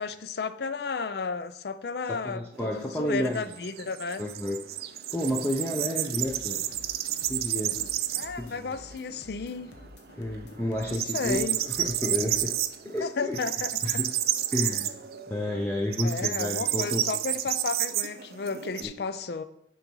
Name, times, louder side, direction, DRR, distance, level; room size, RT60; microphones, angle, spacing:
voice 1, 0.0-4.2 8.1-9.7 10.9-11.6 13.0-13.7 16.0-19.4, left 4 dB, 65° left, 13 dB, 0.5 m, -33 dB
voice 2, 2.1-3.5 4.2-4.6 5.1-6.6 7.3-7.8 8.4-8.7 10.2-12.5 12.8-13.4 13.8-14.1 14.5-14.9 15.3-17.0 18.8-18.9, left 1 dB, 10° left, 0 dB, 0.5 m, -31 dB
sound 1, 2.6-8.5 8.8-8.9 9.3-10.1 10.4-18.8, right 12 dB, 55° right, 0.4 m, -31 dB
sound 2, 6.1-12.6, left 2 dB, 85° left, 1.0 m, -50 dB
9.1 x 3.9 x 4.6 m, 0.76 s
head